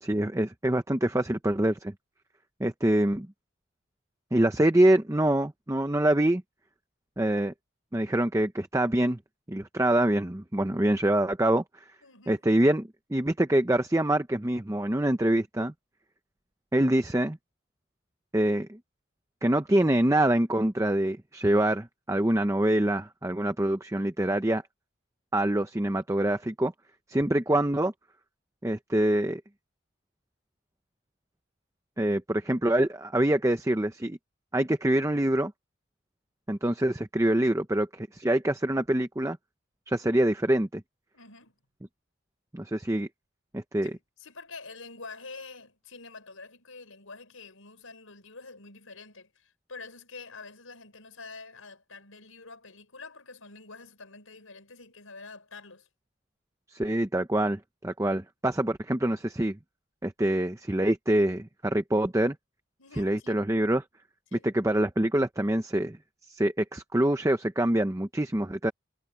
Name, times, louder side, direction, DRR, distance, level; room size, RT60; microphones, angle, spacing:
voice 1, 0.0-1.9 2.6-3.3 4.3-6.4 7.2-7.5 7.9-9.2 9.5-11.6 12.3-15.7 16.7-17.4 18.3-18.8 19.4-24.6 25.3-26.7 27.1-27.9 28.6-29.4 32.0-34.2 34.5-35.5 36.5-39.4 39.9-40.8 42.5-43.1 43.5-43.9 56.7-59.6 60.0-62.3 63.0-63.8 64.3-66.0 66.3-68.7, right 1 dB, 15° right, 0.7 m, -25 dB
voice 2, 12.0-12.4 41.1-41.5 43.8-55.9 62.8-63.5 64.3-64.5, left 4 dB, 85° left, 5.0 m, -47 dB
head